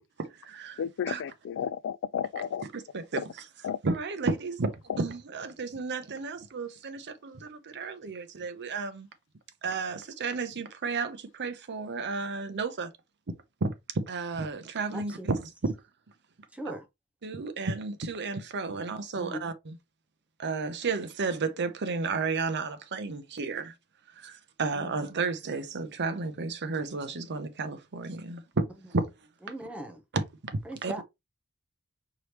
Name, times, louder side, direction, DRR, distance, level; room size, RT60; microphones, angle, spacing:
voice 1, 0.2-0.8 1.1-1.2 2.7-3.2 3.8-4.7 5.0-9.1 9.6-12.9 13.6-15.4 17.2-19.8 20.4-23.7 24.2-29.0 30.1-31.0, right 4 dB, 50° right, 0.7 m, -32 dB
voice 2, 0.8-2.6 3.2-3.3 3.6-3.8 4.9-5.0, left 8 dB, 55° left, 0.3 m, -32 dB
voice 3, 14.9-15.3 16.5-16.9 19.1-19.4 24.7-24.9 29.4-30.0 30.6-31.0, right 1 dB, 5° right, 0.8 m, -39 dB
4.7 x 3.3 x 2.9 m
head